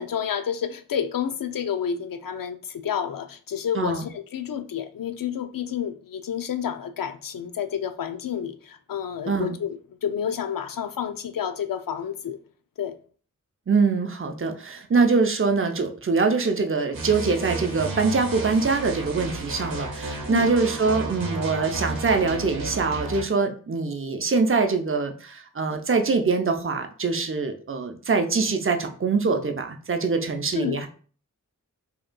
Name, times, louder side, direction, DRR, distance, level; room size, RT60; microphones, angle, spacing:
voice 1, 0.0-12.4 12.8-13.0 20.3-20.5 30.5-30.8, left 8 dB, 80° left, 0.5 m, -30 dB
voice 2, 9.3-9.6 13.7-30.9, right 4 dB, 40° right, 0.6 m, -24 dB
sound 1, 16.9-23.2, right 3 dB, 90° right, 0.9 m, -32 dB
5.1 x 2.9 x 2.2 m
wide cardioid pair, 70°, 33 cm